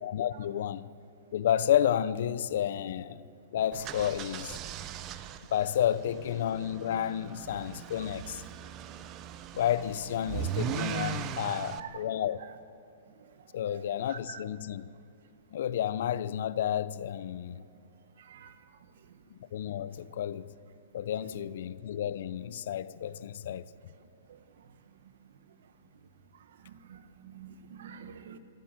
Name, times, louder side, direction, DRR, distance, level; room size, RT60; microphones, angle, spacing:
voice 1, 0.0-0.9 1.3-3.2 3.5-4.6 5.5-8.4 9.5-12.4 13.5-14.9 15.5-17.6 19.5-20.5 20.9-23.6, left 10 dB, 65° left, 0.7 m, -31 dB
sound 1, 3.7-11.8, right 10 dB, 30° right, 0.9 m, -39 dB
voice 2, 11.4-12.0 12.4-12.5 13.7-14.4 18.3-18.5 21.2-21.3 26.7-28.4, right 7 dB, 70° right, 1.6 m, -46 dB
25.0 x 13.5 x 7.6 m
hypercardioid pair, 145°, 0 cm